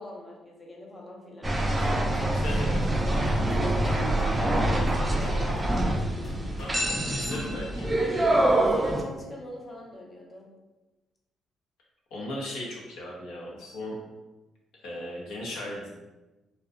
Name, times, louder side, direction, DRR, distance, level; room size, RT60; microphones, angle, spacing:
voice 1, 0.0-2.1 3.8-5.9 8.0-10.5, left 1 dB, 25° left, -1 dB, 0.6 m, -41 dB
sound 1, 1.4-9.0, right 1 dB, 15° right, 0.4 m, -25 dB
sound 2, 2.1-7.6, equal, 60° left, 0.9 m, -45 dB
voice 2, 2.2-2.8 6.6-7.9 12.1-13.9 14.8-15.9, left 1 dB, 85° left, -3 dB, 0.7 m, -37 dB
Guitar, 3.5-8.2, right 4 dB, 75° right, 0.4 m, -44 dB
2.6 x 2.1 x 2.4 m, 1.1 s
cardioid pair, 90°, 0 cm